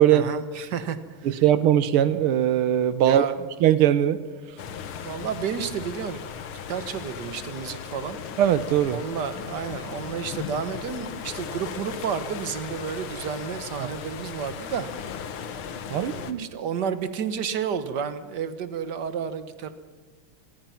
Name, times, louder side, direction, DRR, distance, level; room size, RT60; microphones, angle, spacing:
voice 1, 0.1-1.4 3.0-3.3 5.0-6.3 6.7-8.2 8.9-14.9 15.9-19.7, right 7 dB, 55° right, 11 dB, 1.7 m, -31 dB
voice 2, 1.2-3.3 3.6-4.2 8.4-9.0 13.8-13.9 15.9-16.5, right 11 dB, 80° right, 14 dB, 1.9 m, -20 dB
sound 1, 4.6-16.3, left 7 dB, 70° left, 2.0 m, -37 dB
26.0 x 20.0 x 5.8 m, 1.2 s
omnidirectional pair, 2.4 m